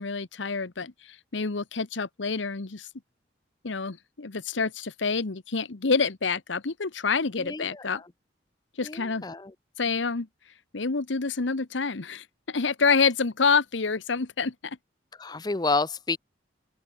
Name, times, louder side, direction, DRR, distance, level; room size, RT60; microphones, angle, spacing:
voice 1, 0.0-2.9 3.6-8.0 8.8-9.3 9.8-10.3 10.7-14.8, left 4 dB, 80° left, 1.0 m, -27 dB
voice 2, 7.4-8.1 8.8-9.5 15.2-16.2, left 3 dB, 20° left, 0.5 m, -30 dB
open air
head